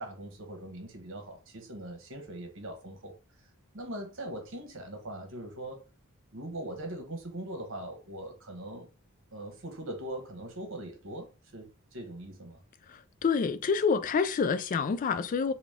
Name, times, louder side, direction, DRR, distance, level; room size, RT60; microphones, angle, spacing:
voice 1, 0.0-3.2 3.7-5.8 6.3-8.9 9.3-12.6, right 1 dB, 60° right, 1.2 m, -41 dB
voice 2, 12.9-15.5, left 5 dB, 40° left, 0.3 m, -28 dB
3.9 x 2.3 x 3.5 m
head